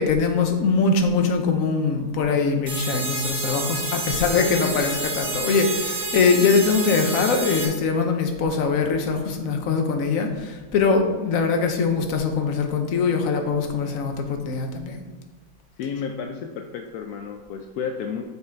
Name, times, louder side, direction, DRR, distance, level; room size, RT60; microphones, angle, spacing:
voice 1, 0.0-15.0, left 4 dB, 55° left, 4 dB, 1.0 m, -22 dB
sound 1, 2.7-7.7, right 2 dB, 90° right, 2.5 m, -29 dB
voice 2, 15.8-18.2, left 6 dB, 75° left, 4 dB, 0.9 m, -31 dB
6.5 x 5.6 x 4.5 m, 1.2 s
omnidirectional pair, 2.2 m